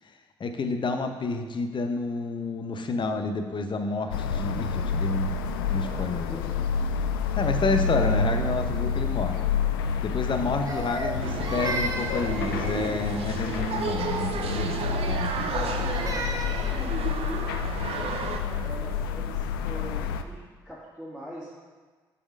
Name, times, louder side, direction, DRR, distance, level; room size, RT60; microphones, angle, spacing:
voice 1, 0.4-6.4 7.4-9.4 10.0-14.8 15.1-15.5, left 3 dB, 45° left, 6 dB, 0.9 m, -30 dB
sound 1, 4.1-20.2, left 6 dB, 85° left, 0.4 m, -29 dB
voice 2, 5.8-7.5 15.5-21.5, equal, ahead, -9 dB, 2.0 m, -43 dB
Crying sobbing, 10.7-13.2 15.4-16.8, right 2 dB, 30° right, 1.3 m, -34 dB
sound 2, 11.2-18.4, right 6 dB, 55° right, 0.7 m, -33 dB
6.7 x 5.3 x 5.3 m, 1.4 s
hypercardioid pair, 50°, 12 cm